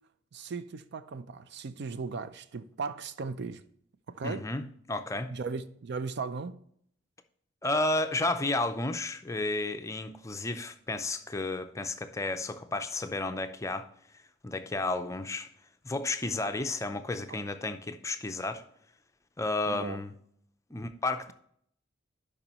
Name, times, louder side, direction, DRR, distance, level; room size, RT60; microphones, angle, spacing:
voice 1, 0.3-3.6 4.1-4.5 5.3-6.6 17.3-17.4 19.7-20.0, right 4 dB, 60° right, 0.4 m, -37 dB
voice 2, 4.2-5.3 7.6-13.9 14.4-15.5 15.8-18.6 19.4-20.1 20.7-21.3, left 2 dB, 15° left, 0.4 m, -32 dB
11.0 x 5.3 x 2.9 m
head